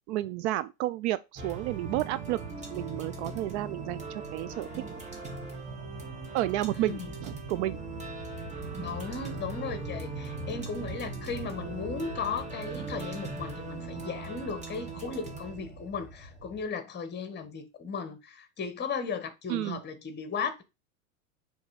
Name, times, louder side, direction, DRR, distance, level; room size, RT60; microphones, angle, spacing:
voice 1, 0.1-2.4 2.7-4.7 6.3-7.8 19.5-19.8, right 15 dB, 55° right, 0.5 m, -31 dB
sound 1, 1.4-16.7, right 3 dB, 15° right, 2.1 m, -39 dB
voice 2, 8.8-20.6, left 5 dB, 25° left, 1.5 m, -36 dB
6.8 x 3.6 x 4.9 m
hypercardioid pair, 105°, 42 cm